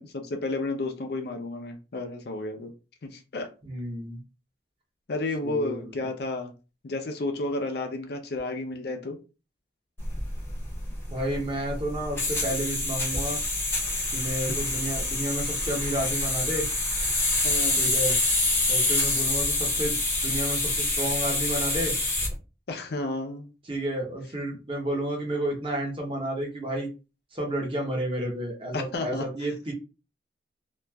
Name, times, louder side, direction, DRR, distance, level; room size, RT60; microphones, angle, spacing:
voice 1, 0.0-2.7 3.0-3.5 5.1-6.5 6.8-9.2 17.4-18.0 22.7-23.5 28.7-29.3, left 2 dB, 60° left, 0.5 m, -32 dB
voice 2, 3.6-4.2 5.4-5.8 11.1-13.4 14.1-16.6 17.8-18.2 18.7-20.0 20.2-21.9 23.7-26.9 27.3-29.7, right 1 dB, 30° right, 0.8 m, -31 dB
sound 1, 10.0-22.3, left 2 dB, 15° left, 0.6 m, -27 dB
3.0 x 2.4 x 2.2 m
head